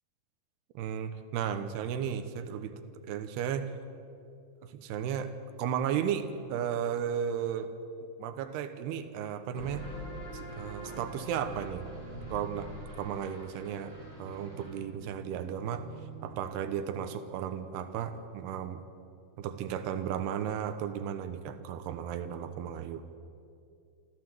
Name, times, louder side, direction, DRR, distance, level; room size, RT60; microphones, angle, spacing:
voice 1, 0.8-3.7 4.7-5.3 5.6-7.7 8.2-9.9 10.3-11.8 12.3-12.7 13.0-13.9 14.2-15.9 16.2-18.8 19.4-23.1, right 8 dB, 85° right, 9 dB, 3.0 m, -34 dB
sound 1, 9.5-16.9, right 2 dB, 30° right, 6.9 m, -44 dB
27.0 x 13.0 x 7.6 m, 2.5 s
omnidirectional pair, 4.5 m